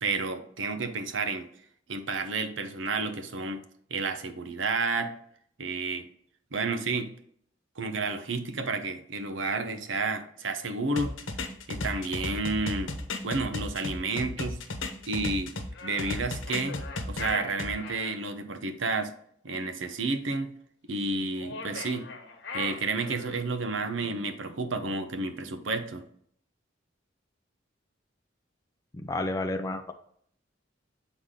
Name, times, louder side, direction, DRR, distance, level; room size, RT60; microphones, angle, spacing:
voice 1, 0.0-1.5 1.9-3.6 3.9-5.1 5.6-6.1 6.5-7.1 7.8-11.2 11.7-12.9 13.2-14.6 15.0-15.5 15.8-16.8 17.0-19.1 19.4-20.5 20.9-22.1 22.5-26.0, right 3 dB, 80° right, 8 dB, 0.8 m, -31 dB
sound 1, 11.0-15.7 16.0-17.7, left 2 dB, 85° left, 1.0 m, -34 dB
sound 2, 15.7-18.2 21.3-23.5, left 4 dB, 65° left, 1.2 m, -40 dB
voice 2, 28.9-29.9, left 2 dB, 20° left, 5 dB, 0.4 m, -31 dB
8.1 x 4.0 x 3.8 m, 0.64 s
head